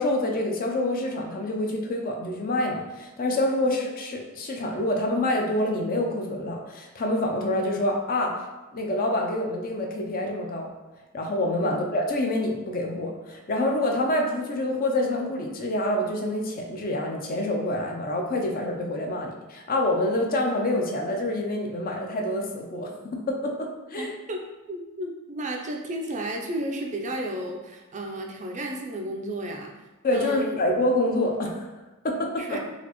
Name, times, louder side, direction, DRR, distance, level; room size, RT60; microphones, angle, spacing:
voice 1, 0.0-8.4 8.7-10.7 11.1-24.1 30.0-31.7 32.0-32.6, left 1 dB, 40° left, 1 dB, 0.5 m, -27 dB
voice 2, 24.0-24.4 24.7-29.7 30.1-30.6 32.4-32.6, right 1 dB, 35° right, 2 dB, 0.4 m, -33 dB
4.0 x 2.4 x 3.0 m, 1.1 s
head